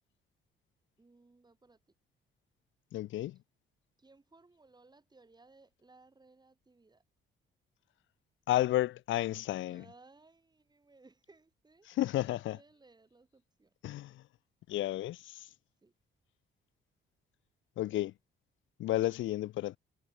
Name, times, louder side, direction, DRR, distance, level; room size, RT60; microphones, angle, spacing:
voice 1, 1.0-1.9 4.0-7.0 9.7-11.9 12.2-13.7 15.8-15.9, right 3 dB, 20° right, 5.9 m, -62 dB
voice 2, 2.9-3.3 8.5-9.8 12.0-12.6 13.8-14.1 14.7-15.2 17.8-18.1 18.8-19.8, left 14 dB, 75° left, 0.6 m, -31 dB
cardioid pair, 90°, 20 cm